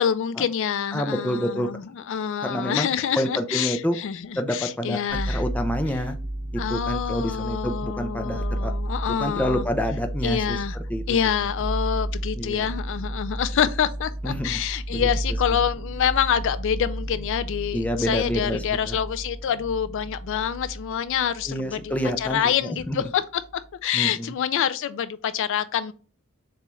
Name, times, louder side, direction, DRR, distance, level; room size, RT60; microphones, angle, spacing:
voice 1, 0.0-5.4 6.6-9.7 10.2-10.8 11.1-23.2 23.8-25.9, left 8 dB, 60° left, 0.3 m, -26 dB
voice 2, 0.9-1.7 2.4-2.9 3.2-4.0 4.4-5.0 5.3-6.2 6.5-8.7 9.2-10.6 10.9-11.0 12.4-12.7 14.2-14.6 14.9-15.1 15.5-15.6 17.7-19.0 21.5-23.1 23.9-24.3, equal, 5° left, 0.5 m, -28 dB
sound 1, 5.1-22.5 22.8-23.6, right 1 dB, 65° right, 1.0 m, -32 dB
6.7 x 2.4 x 3.1 m
head